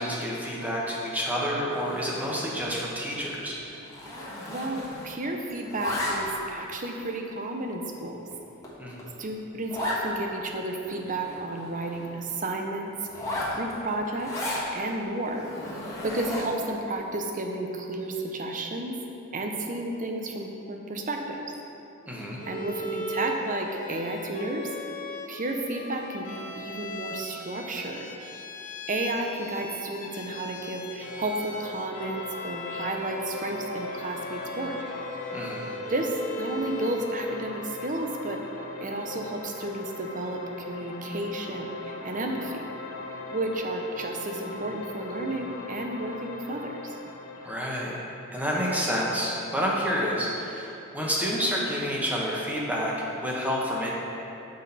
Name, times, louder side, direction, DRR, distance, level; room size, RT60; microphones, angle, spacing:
voice 1, 0.0-3.6 8.8-9.0 16.1-16.2 22.1-22.4 35.3-35.7 47.4-48.0 48.3-53.9, equal, 5° right, -4 dB, 1.0 m, -29 dB
Zipper (clothing), 1.7-2.7 3.0-3.3 3.5-5.2 5.5-6.5 7.1-7.2 7.8-7.9 8.3-8.4 8.6-8.7 9.0-9.1 9.7-10.0 10.5-10.6 10.8-12.1 13.1-14.7 15.3-16.7, left 1 dB, 15° left, 1.3 m, -35 dB
voice 2, 4.5-8.2 9.2-12.9 13.6-14.4 14.7-15.4 16.0-18.9 19.3-21.4 22.4-24.7 25.3-28.1 28.9-34.7 35.9-38.4 38.8-42.6 43.3-46.9, right 2 dB, 35° right, 2 dB, 0.7 m, -32 dB
Bowed string instrument, 22.4-37.3, left 1 dB, 35° left, 0.5 m, -38 dB
sound 1, 31.0-48.0, left 3 dB, 70° left, 0.7 m, -40 dB
7.2 x 6.3 x 4.2 m, 2.9 s
head